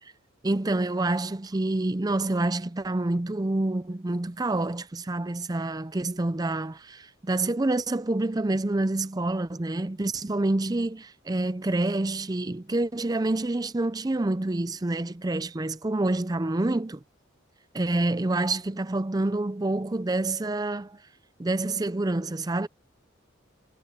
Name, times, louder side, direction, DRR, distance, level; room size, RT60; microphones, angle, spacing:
voice 1, 0.4-17.0 17.7-21.0 21.4-22.7, right 2 dB, 20° right, 0.5 m, -27 dB
head